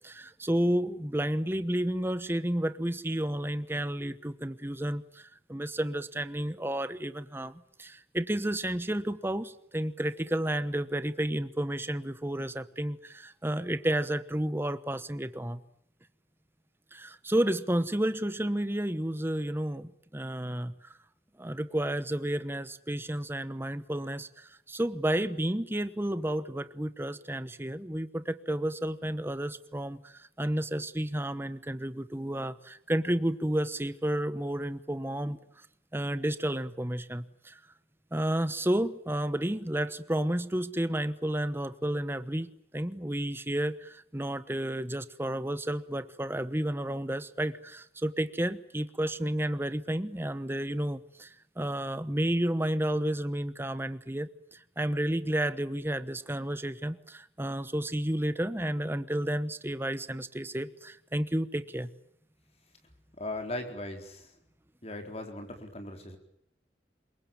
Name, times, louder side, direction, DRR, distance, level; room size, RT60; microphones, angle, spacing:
voice 1, 0.0-15.6 16.9-21.0 21.4-35.4 35.9-37.6 38.1-61.9, right 1 dB, 15° right, 13 dB, 1.1 m, -31 dB
voice 2, 63.2-64.3 64.8-66.2, left 1 dB, 35° left, 4 dB, 4.3 m, -38 dB
27.5 x 23.0 x 9.2 m, 0.71 s
head